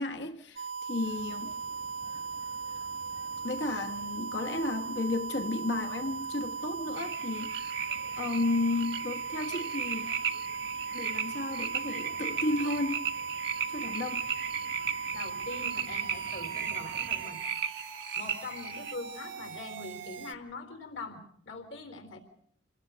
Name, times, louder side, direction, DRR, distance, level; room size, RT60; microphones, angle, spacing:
voice 1, 0.0-1.6 3.4-10.1 10.9-13.1 13.7-14.3, left 2 dB, 70° left, 1.2 m, -33 dB
sound 1, 0.6-20.3, right 5 dB, 80° right, 1.4 m, -38 dB
sound 2, 1.0-17.3, equal, 25° right, 6.0 m, -55 dB
sound 3, 7.0-18.9, right 7 dB, 60° right, 1.2 m, -36 dB
voice 2, 15.1-17.4 18.2-22.2, left 3 dB, 90° left, 3.7 m, -43 dB
27.5 x 19.0 x 6.7 m
head